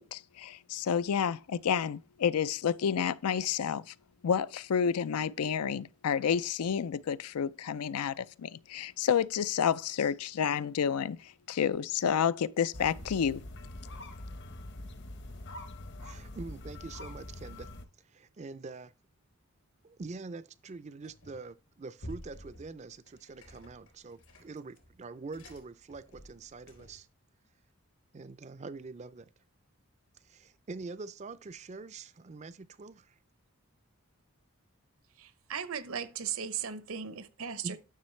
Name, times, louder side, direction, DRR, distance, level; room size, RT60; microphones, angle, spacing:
voice 1, 0.0-3.9 4.2-13.4, left 7 dB, 90° left, 0.4 m, -30 dB
sound 1, 12.7-17.8, left 1 dB, 50° left, 0.9 m, -44 dB
voice 2, 16.0-17.7 18.1-18.9 19.8-27.1 28.1-29.3 30.2-33.2 37.6-37.8, right 3 dB, 30° right, 0.4 m, -44 dB
sound 2, 21.0-21.6 22.0-27.1, equal, 70° left, 3.7 m, -51 dB
voice 3, 35.1-37.8, right 7 dB, 70° right, 0.8 m, -37 dB
11.5 x 6.3 x 3.2 m
head